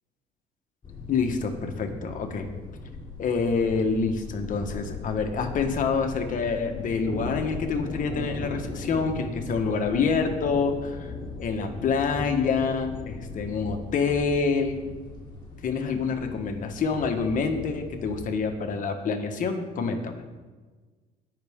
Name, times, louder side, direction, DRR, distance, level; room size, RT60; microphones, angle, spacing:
sound 1, 0.8-18.4, left 2 dB, 30° left, 3.5 m, -38 dB
voice 1, 1.1-2.5 3.2-11.1 11.4-14.8 15.6-20.2, left 5 dB, 50° left, 5 dB, 1.4 m, -27 dB
17.5 x 6.0 x 3.7 m, 1.4 s
cardioid pair, 110°, 17 cm